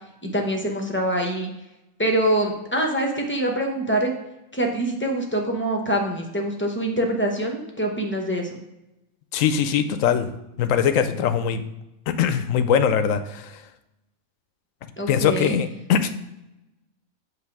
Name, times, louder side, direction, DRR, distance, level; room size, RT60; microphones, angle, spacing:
voice 1, 0.2-1.5 2.0-4.1 4.5-8.6 15.0-15.6, right 1 dB, 10° left, 1 dB, 0.6 m, -24 dB
voice 2, 9.3-10.3 10.6-11.6 12.1-13.5 15.1-16.1, left 8 dB, 70° left, 10 dB, 0.9 m, -21 dB
7.6 x 3.2 x 5.9 m, 0.92 s
omnidirectional pair, 1.5 m